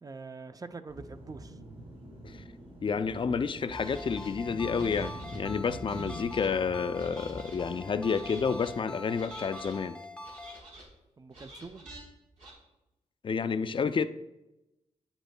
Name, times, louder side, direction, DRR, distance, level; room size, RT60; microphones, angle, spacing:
voice 1, 0.0-1.6 11.2-11.9, right 4 dB, 30° right, 10 dB, 0.5 m, -44 dB
sound 1, 0.9-8.7, right 1 dB, 50° right, 2.4 m, -45 dB
voice 2, 2.8-10.0 13.2-14.0, left 5 dB, 45° left, 12 dB, 0.4 m, -30 dB
Ringtone, 3.7-10.6, left 2 dB, 10° left, 0.7 m, -45 dB
sound 2, 3.8-4.3 4.7-5.4 5.9-6.5 6.9-7.6 8.0-8.7 9.1-9.8 10.2-10.9 11.3-12.0 12.4-12.5, right 1 dB, 85° right, 2.5 m, -49 dB
8.7 x 7.9 x 2.2 m, 0.94 s
cardioid pair, 85°, 12 cm